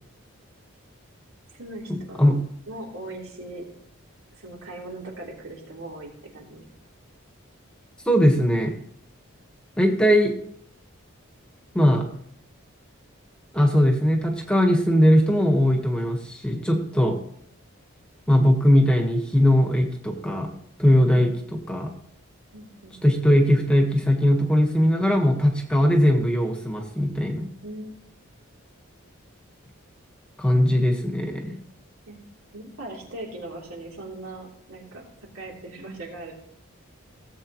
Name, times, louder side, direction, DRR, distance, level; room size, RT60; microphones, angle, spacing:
voice 1, 1.5-2.3 2.7-3.7 4.4-6.7 21.1-21.3 22.5-23.0 27.6-28.0 32.1-32.3 32.5-35.1 35.3-36.3, right 2 dB, 80° right, -2 dB, 3.4 m, -39 dB
voice 2, 8.0-8.7 9.8-10.3 11.7-12.0 13.5-17.2 18.3-20.5 20.8-21.3 21.7-21.9 23.0-27.5 30.4-31.6, equal, 5° left, 3 dB, 1.3 m, -20 dB
17.5 x 7.9 x 3.1 m, 0.68 s
head